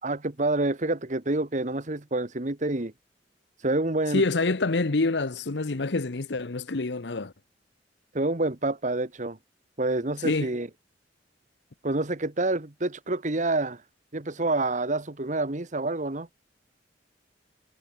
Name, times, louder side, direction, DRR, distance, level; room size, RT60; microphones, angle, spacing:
voice 1, 0.0-2.9 3.6-4.2 8.1-9.4 9.8-10.7 11.8-13.8 14.1-16.3, right 2 dB, 45° right, 1.6 m, -27 dB
voice 2, 4.1-7.3 10.2-10.5, left 3 dB, 75° left, 0.9 m, -26 dB
head